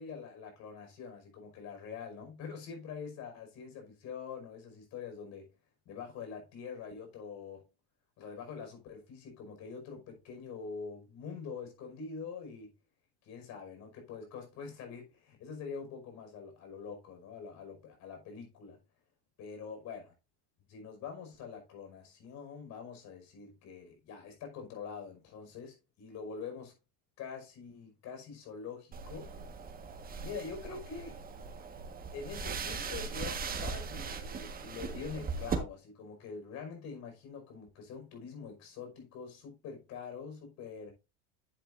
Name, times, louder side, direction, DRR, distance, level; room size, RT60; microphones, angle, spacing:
voice 1, 0.0-5.5 5.9-7.6 8.2-12.7 13.2-18.8 19.4-20.0 20.7-26.7 27.2-29.3 30.2-31.2 32.1-40.9, left 5 dB, 55° left, 5.5 m, -45 dB
sound 1, 28.9-35.6, right 5 dB, 25° right, 1.6 m, -39 dB
10.5 x 8.2 x 2.6 m
supercardioid pair, 115°, 33 cm